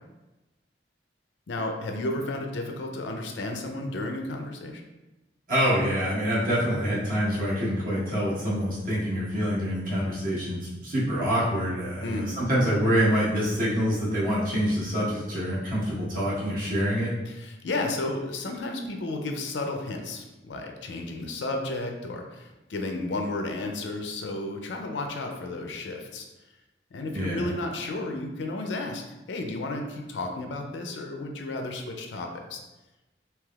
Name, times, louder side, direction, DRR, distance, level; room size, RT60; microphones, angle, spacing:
voice 1, 1.5-4.8 12.0-12.3 17.3-26.3 26.9-29.0 29.3-32.6, left 2 dB, 75° left, 3 dB, 0.4 m, -33 dB
voice 2, 5.5-17.1 27.1-27.5, equal, 50° right, -8 dB, 1.1 m, -26 dB
3.3 x 2.9 x 2.3 m, 1.0 s
head